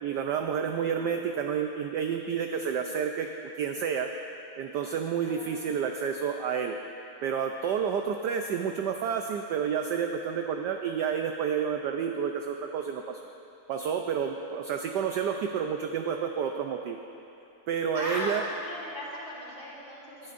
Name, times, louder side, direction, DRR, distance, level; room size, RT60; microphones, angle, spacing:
voice 1, 0.0-3.3 3.6-4.1 4.6-6.8 7.2-13.2 13.7-17.0 17.7-18.4 20.2-20.3, right 7 dB, 80° right, 4 dB, 0.9 m, -30 dB
voice 2, 0.6-1.0 5.2-5.6 17.9-20.3, equal, 30° left, -7 dB, 3.2 m, -38 dB
20.5 x 12.0 x 2.6 m, 2.8 s
omnidirectional pair, 2.4 m